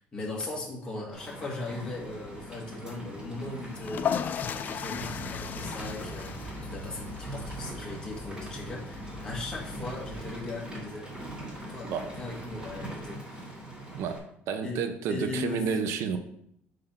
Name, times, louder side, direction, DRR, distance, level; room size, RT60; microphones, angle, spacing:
voice 1, 0.0-4.2 4.7-11.1 11.7-13.6 14.6-15.8, left 2 dB, 15° left, -3 dB, 1.9 m, -38 dB
Rain, 1.1-14.2, right 1 dB, 15° right, 2.1 m, -42 dB
sound 1, 3.7-10.5, left 8 dB, 40° left, 0.4 m, -37 dB
sound 2, 4.9-10.3, equal, ahead, 0.9 m, -44 dB
voice 2, 13.9-16.2, right 6 dB, 70° right, 8 dB, 0.7 m, -31 dB
7.6 x 3.4 x 5.7 m, 0.72 s
cardioid pair, 150°, 5 cm